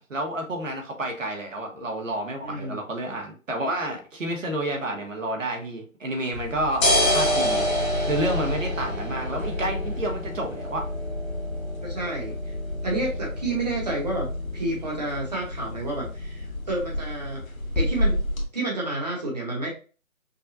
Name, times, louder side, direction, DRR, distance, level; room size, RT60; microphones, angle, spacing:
voice 1, 0.1-10.8, right 1 dB, 65° right, 3 dB, 1.3 m, -30 dB
voice 2, 2.4-2.8 11.8-12.5 12.8-14.3 14.5-17.4 17.7-18.2 18.5-19.7, right 2 dB, 30° right, -2 dB, 1.2 m, -30 dB
sound 1, 6.3-18.4, left 1 dB, 70° left, 1.5 m, -28 dB
5.4 x 2.3 x 2.6 m, 0.35 s
figure-of-eight pair, 170°, 42 cm